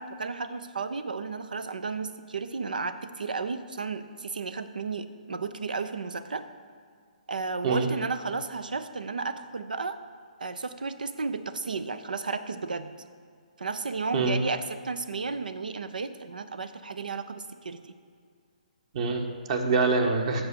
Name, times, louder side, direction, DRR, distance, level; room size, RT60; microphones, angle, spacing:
voice 1, 0.0-6.4 7.3-10.0 10.4-12.9 13.6-17.8, right 4 dB, 90° right, 11 dB, 0.6 m, -33 dB
voice 2, 18.9-20.4, right 4 dB, 50° right, 4 dB, 1.3 m, -25 dB
7.9 x 6.9 x 6.9 m, 2.1 s
hypercardioid pair, 145°, 4 cm